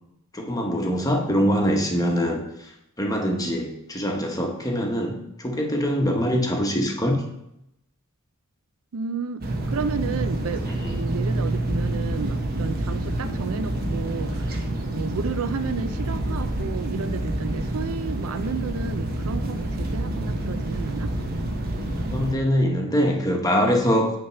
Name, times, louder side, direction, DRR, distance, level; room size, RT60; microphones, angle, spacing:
voice 1, 0.3-2.4 3.0-7.2 10.6-11.0 22.1-24.2, equal, 15° left, 1 dB, 1.0 m, -23 dB
voice 2, 8.9-14.6 14.9-21.1, right 5 dB, 70° right, 12 dB, 0.4 m, -32 dB
sound 1, 9.4-22.3, right 1 dB, 45° right, 1.0 m, -28 dB
8.8 x 3.4 x 5.6 m, 0.83 s
head